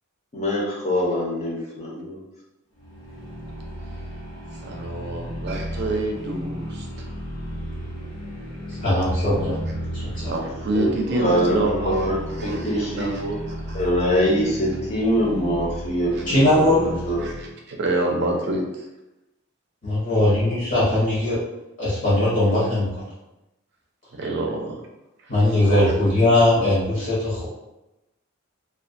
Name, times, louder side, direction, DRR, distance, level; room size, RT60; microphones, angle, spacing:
voice 1, 0.3-2.2 10.7-13.1 13.7-17.3, equal, 30° left, -4 dB, 0.6 m, -24 dB
sound 1, 2.8-17.5, equal, 90° left, 0.9 m, -34 dB
voice 2, 4.6-7.1 10.2-12.1 12.4-13.4 13.7-13.8 16.1-16.4 17.2-18.6 24.2-24.8 25.7-25.9, right 2 dB, 50° right, 1 dB, 0.4 m, -27 dB
voice 3, 8.7-9.6 9.9-10.3 16.3-16.9 19.8-21.4 21.8-22.9 25.3-27.5, left 1 dB, 60° left, -10 dB, 0.9 m, -20 dB
2.3 x 2.1 x 2.5 m, 0.95 s
head